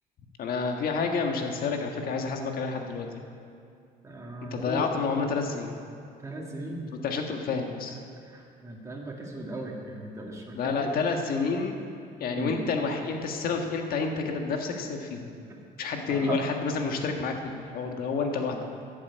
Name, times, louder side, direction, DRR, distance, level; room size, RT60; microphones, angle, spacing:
voice 1, 0.4-3.2 4.5-5.8 7.0-8.0 10.5-11.8 12.2-15.3 15.8-18.6, left 4 dB, 60° left, 3 dB, 1.6 m, -29 dB
voice 2, 4.0-4.9 6.2-6.9 8.2-11.0 12.3-12.6 16.1-16.4 18.3-18.5, right 2 dB, 15° right, -2 dB, 2.1 m, -37 dB
11.5 x 7.8 x 8.3 m, 2.4 s
cardioid pair, 110°, 17 cm